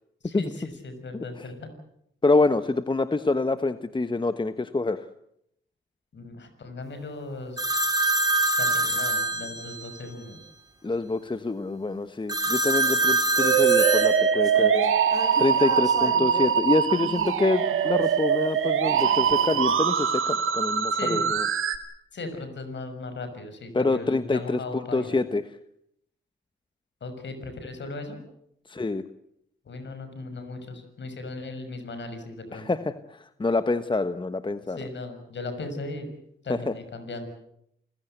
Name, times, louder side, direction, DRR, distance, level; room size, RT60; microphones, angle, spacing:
voice 1, 0.2-1.7 6.1-7.9 8.6-10.4 20.9-21.3 22.1-25.2 27.0-28.2 29.7-32.7 34.8-36.1 36.4-37.3, left 2 dB, 60° left, 8 dB, 6.4 m, -37 dB
voice 2, 1.1-1.4 2.2-5.0 10.8-14.7 15.4-21.4 23.7-25.4 28.7-29.0 32.5-34.8 36.5-36.7, left 3 dB, 20° left, 11 dB, 1.2 m, -26 dB
sound 1, 7.6-10.0 12.3-16.5 16.9-18.0 18.9-19.8, right 2 dB, 20° right, 4.1 m, -27 dB
Musical instrument, 13.4-21.8, right 7 dB, 75° right, 2.2 m, -23 dB
28.5 x 16.5 x 8.2 m, 0.75 s
supercardioid pair, 55°, 21 cm